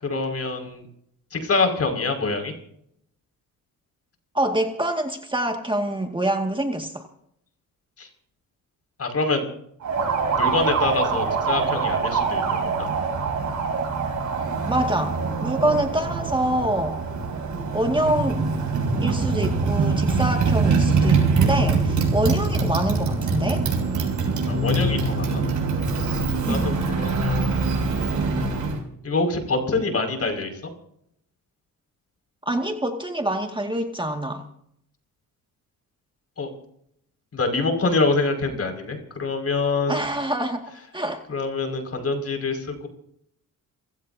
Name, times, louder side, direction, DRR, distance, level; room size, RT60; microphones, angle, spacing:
voice 1, 0.0-0.8 1.3-2.5 8.0-8.1 9.0-9.4 10.4-12.9 24.5-25.4 26.5-27.5 29.0-30.5 36.4-36.5 37.3-40.0 41.3-42.9, left 3 dB, 45° left, 4 dB, 5.9 m, -25 dB
voice 2, 4.3-7.0 14.7-17.0 17.7-18.4 19.0-23.7 26.5-26.7 32.5-34.4 39.9-40.6 40.9-41.2, right 1 dB, 15° right, 3 dB, 2.1 m, -25 dB
Motorcycle, 9.8-28.8, right 4 dB, 60° right, 7.1 m, -23 dB
29.0 x 17.0 x 2.8 m, 0.70 s
cardioid pair, 85°, 34 cm